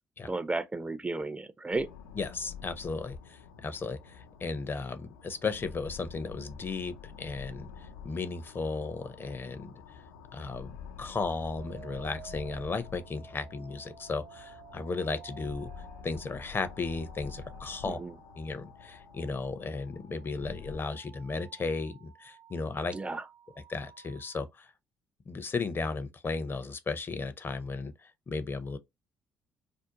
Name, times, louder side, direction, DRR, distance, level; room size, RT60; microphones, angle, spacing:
voice 1, 0.2-1.9 17.9-18.1 22.9-23.2, right 3 dB, 20° right, 0.4 m, -33 dB
sound 1, 1.7-20.8, left 6 dB, 85° left, 0.4 m, -48 dB
voice 2, 2.1-9.7 10.3-15.7 16.0-18.0 18.4-22.9 23.7-24.7 25.3-28.8, left 4 dB, 35° left, 0.5 m, -35 dB
sound 2, 11.5-24.4, right 7 dB, 70° right, 0.9 m, -53 dB
2.5 x 2.0 x 2.8 m
hypercardioid pair, 50°, 6 cm